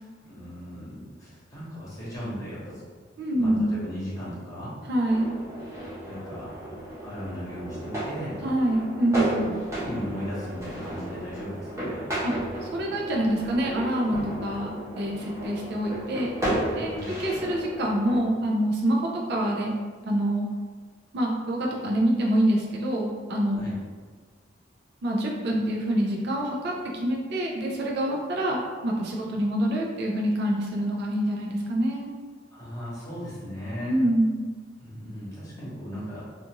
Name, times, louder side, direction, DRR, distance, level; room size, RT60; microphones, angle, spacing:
voice 1, 0.2-2.8 3.4-4.7 6.0-6.5 7.0-8.4 9.3-9.5 9.8-12.0 16.7-17.1 23.5-23.8 32.5-34.0 34.8-36.2, equal, 20° left, -9 dB, 1.0 m, -37 dB
voice 2, 3.2-3.7 4.9-5.3 8.4-9.5 12.2-12.3 12.6-16.3 16.7-19.7 20.0-20.5 21.1-23.7 25.0-32.1 33.9-34.4, right 1 dB, 60° right, -2 dB, 0.4 m, -26 dB
sound 1, 5.0-18.2, right 1 dB, 15° right, 0.8 m, -34 dB
2.4 x 2.4 x 2.9 m, 1.5 s
head